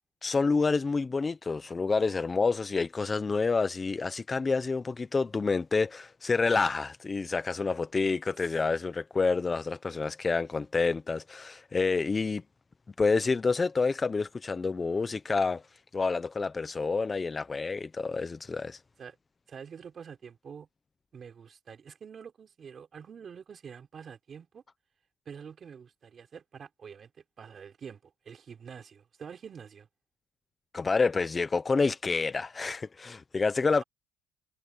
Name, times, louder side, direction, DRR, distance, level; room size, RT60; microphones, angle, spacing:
voice 1, 0.2-12.4 13.0-15.6 15.9-18.8 30.7-33.8, left 4 dB, 20° left, 0.5 m, -28 dB
voice 2, 19.5-20.7 21.1-24.6 25.3-27.1 27.4-29.9 33.8-33.9, right 7 dB, 30° right, 4.3 m, -46 dB
cardioid pair, 145°, 0 cm